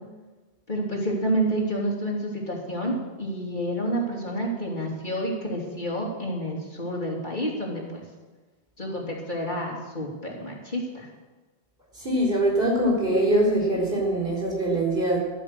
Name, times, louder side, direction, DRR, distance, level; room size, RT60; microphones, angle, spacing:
voice 1, 0.7-8.0 8.8-11.1, right 1 dB, 50° left, -2 dB, 3.1 m, -29 dB
voice 2, 12.0-15.2, right 1 dB, 55° right, -2 dB, 4.8 m, -23 dB
14.0 x 12.0 x 6.7 m, 1.2 s
omnidirectional pair, 1.1 m